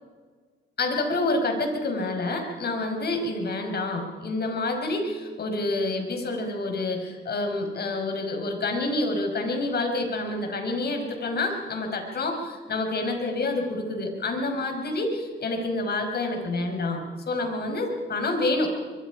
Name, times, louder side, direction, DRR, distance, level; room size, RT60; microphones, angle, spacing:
voice 1, 0.8-18.7, left 2 dB, 55° left, 4 dB, 5.7 m, -28 dB
24.5 x 23.5 x 5.1 m, 1.5 s
cardioid pair, 90°, 20 cm